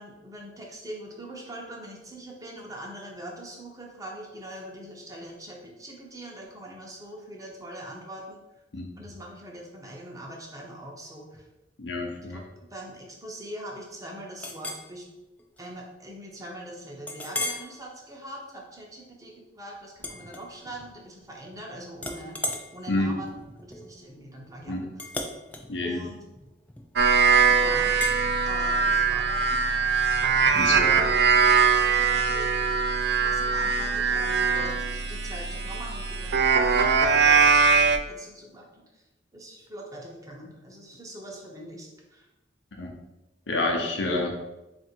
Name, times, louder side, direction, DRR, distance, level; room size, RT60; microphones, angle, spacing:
voice 1, 0.0-8.4 9.0-11.5 12.3-15.1 15.6-22.4 22.7-25.1 25.8-26.3 27.5-29.8 30.6-31.5 31.9-32.6 33.2-36.3 36.6-37.5 38.1-39.0 39.3-42.3, right 1 dB, 20° right, -1 dB, 0.8 m, -42 dB
voice 2, 11.8-12.4 22.9-23.2 24.7-24.9 25.7-26.0 30.5-30.9 42.8-43.0 43.5-44.3, left 2 dB, 90° left, 1 dB, 0.7 m, -28 dB
Chink clink, 14.4-14.9 15.4-15.6 16.0-16.1 17.1-17.7 18.2-18.5 20.0-20.9 21.2-21.6 22.0-27.1 28.0-28.2, left 1 dB, 10° left, 0.3 m, -36 dB
sound 1, 27.0-38.0, right 5 dB, 65° right, 0.3 m, -22 dB
3.6 x 2.5 x 4.3 m, 1.0 s
head